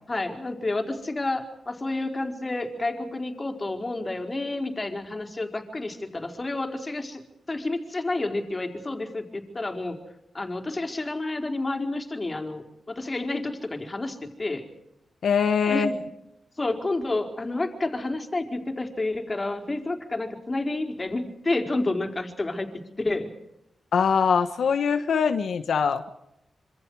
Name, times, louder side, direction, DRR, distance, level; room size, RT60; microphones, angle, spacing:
voice 1, 0.1-10.0 10.3-14.6 15.6-16.0 16.6-23.3, left 2 dB, 30° left, 5 dB, 4.7 m, -30 dB
voice 2, 15.2-15.9 23.9-26.1, left 6 dB, 80° left, 7 dB, 1.3 m, -23 dB
26.5 x 26.5 x 4.9 m, 0.85 s
cardioid pair, 80°, 0 cm